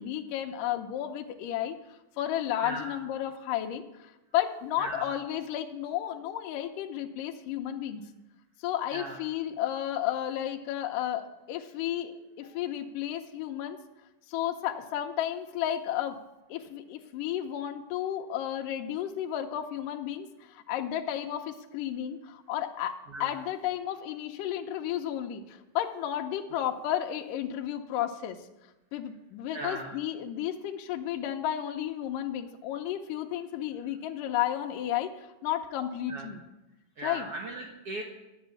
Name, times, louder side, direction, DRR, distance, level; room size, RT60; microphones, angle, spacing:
voice 1, 0.0-8.1 8.6-13.8 14.3-16.2 16.5-28.5 28.9-36.4 37.0-37.3, left 11 dB, 80° left, 3 dB, 2.2 m, -33 dB
voice 2, 2.6-2.9 4.8-5.1 8.9-9.1 23.1-23.3 29.5-29.9 36.1-36.2 37.0-38.0, right 2 dB, 60° right, 0 dB, 1.7 m, -37 dB
10.5 x 8.0 x 8.2 m, 0.98 s
omnidirectional pair, 4.0 m